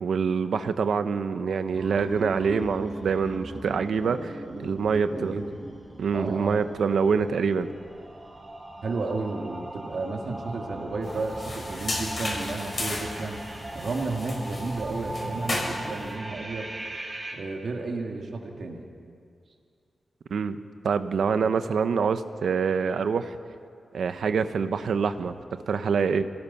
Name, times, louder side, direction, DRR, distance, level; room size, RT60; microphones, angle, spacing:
voice 1, 0.0-4.3 4.6-5.3 6.0-7.7 20.3-20.6 20.8-23.4 23.9-25.4 25.7-26.2, right 5 dB, 85° right, 10 dB, 0.9 m, -25 dB
sound 1, 1.7-17.3, right 1 dB, 25° right, 3.3 m, -39 dB
voice 2, 4.0-5.8 6.1-6.7 8.8-13.4 13.7-16.7 17.3-18.8, right 3 dB, 60° right, 1 dB, 2.6 m, -33 dB
sound 2, 11.0-16.1, left 2 dB, 40° left, 5.0 m, -35 dB
27.5 x 18.0 x 5.8 m, 2.3 s
wide cardioid pair, 145°, 0 cm